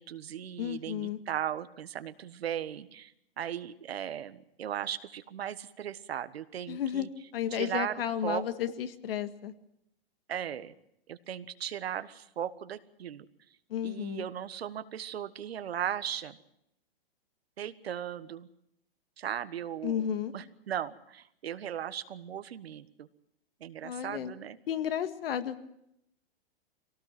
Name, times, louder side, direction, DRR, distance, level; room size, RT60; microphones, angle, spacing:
voice 1, 0.0-3.1 3.4-7.1 7.5-8.5 10.3-10.7 11.1-13.2 13.8-16.4 17.6-18.5 19.2-20.1 20.3-23.1 23.6-24.6, right 10 dB, 80° right, 12 dB, 1.4 m, -37 dB
voice 2, 0.6-1.2 6.7-7.1 7.3-9.5 13.7-14.3 19.8-20.3 23.8-24.3 24.7-25.6, left 9 dB, 65° left, 10 dB, 1.9 m, -33 dB
24.0 x 18.0 x 7.6 m, 0.78 s
hypercardioid pair, 140°, 30 cm